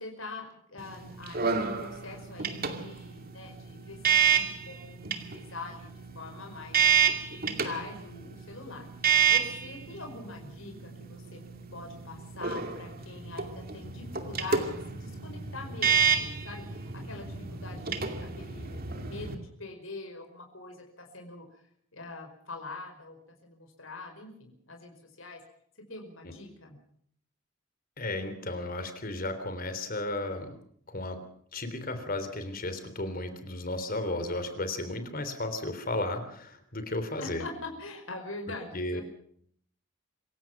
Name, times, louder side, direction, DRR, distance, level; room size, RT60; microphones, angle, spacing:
voice 1, 0.0-6.8 7.3-8.9 9.3-11.4 11.7-21.6 21.9-25.4 25.9-26.8 37.2-39.0, left 3 dB, 75° left, 3 dB, 5.2 m, -43 dB
sound 1, 0.8-19.3, right 7 dB, 50° right, 2.4 m, -30 dB
voice 2, 28.0-30.5 30.9-31.2 31.5-37.4 38.7-39.0, left 2 dB, 45° left, 9 dB, 3.5 m, -34 dB
27.0 x 16.5 x 6.0 m, 0.63 s
head